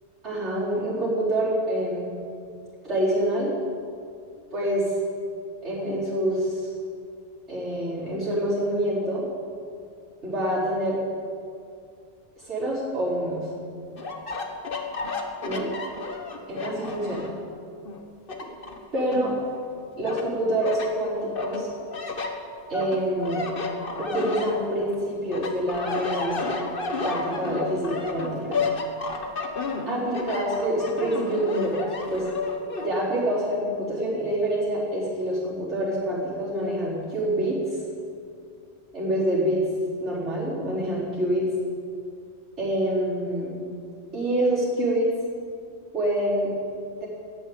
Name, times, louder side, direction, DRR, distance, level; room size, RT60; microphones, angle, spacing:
voice 1, 0.2-2.1 2.9-3.5 4.5-4.9 5.6-6.7 7.5-9.2 10.2-11.0 12.5-13.5 15.4-15.7 16.5-17.3 18.4-18.5 18.9-19.3 20.0-21.7 22.7-23.4 24.0-26.5 27.0-28.6 29.9-32.3 32.8-37.6 38.9-39.7 40.0-41.5 42.6-43.5 44.1-45.1 45.9-46.5 47.0-47.1, right 1 dB, 80° right, -13 dB, 5.1 m, -26 dB
sound 1, 14.0-17.4 17.9-19.6 20.0-20.9 21.4-25.0 25.3-32.9, left 3 dB, 55° left, 1.5 m, -31 dB
14.0 x 10.0 x 8.9 m, 2.4 s
omnidirectional pair, 1.1 m